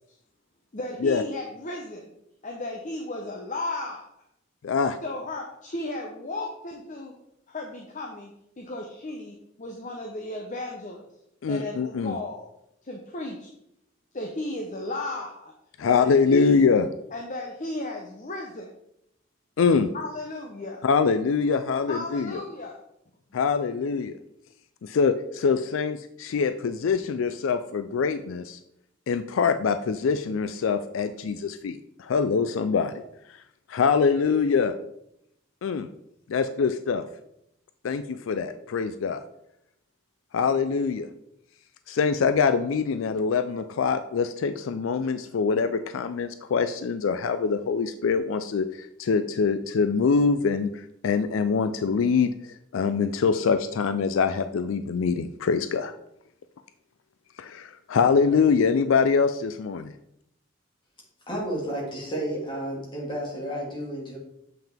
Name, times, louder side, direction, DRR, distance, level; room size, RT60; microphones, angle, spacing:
voice 1, 0.7-2.1 2.4-4.1 5.0-7.2 7.5-11.1 11.5-12.5 12.8-13.5 14.1-15.5 15.8-16.6 17.1-18.7 19.9-20.8 21.9-22.8, left 2 dB, 40° left, 1 dB, 0.8 m, -35 dB
voice 2, 4.6-5.0 11.4-12.2 15.8-16.9 19.6-19.9 20.8-22.4 23.3-24.2 24.8-28.6 29.1-32.9 33.7-34.7 35.6-35.9 36.3-37.0 37.8-39.2 40.3-41.1 41.9-52.3 52.7-55.9 57.4-59.9, left 5 dB, 75° left, 10 dB, 0.4 m, -24 dB
voice 3, 61.3-64.2, right 1 dB, 25° left, -3 dB, 2.1 m, -31 dB
7.5 x 5.7 x 3.5 m, 0.78 s
head